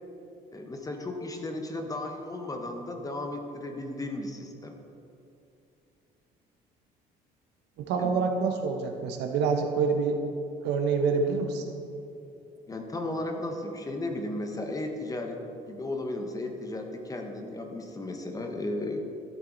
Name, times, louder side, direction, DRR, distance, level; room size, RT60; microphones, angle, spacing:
voice 1, 0.5-4.8 8.0-8.2 12.7-19.0, left 2 dB, 20° left, 4 dB, 1.1 m, -35 dB
voice 2, 7.8-10.2 10.6-11.6, right 5 dB, 85° right, 4 dB, 1.1 m, -26 dB
13.0 x 7.5 x 4.1 m, 2.7 s
cardioid pair, 110°, 17 cm